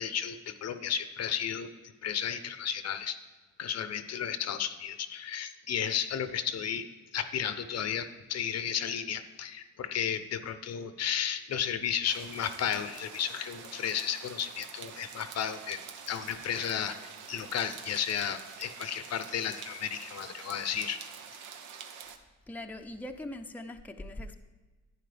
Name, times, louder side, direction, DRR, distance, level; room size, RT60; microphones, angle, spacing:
voice 1, 0.0-1.7 2.0-3.2 3.6-6.8 7.1-15.8 16.1-21.0, left 8 dB, 55° left, 11 dB, 0.7 m, -33 dB
sound 1, 12.1-22.2, right 7 dB, 80° right, 0.9 m, -46 dB
voice 2, 22.5-24.4, left 1 dB, 5° left, 5 dB, 0.6 m, -41 dB
11.0 x 9.1 x 3.4 m, 1.3 s
cardioid pair, 90°, 30 cm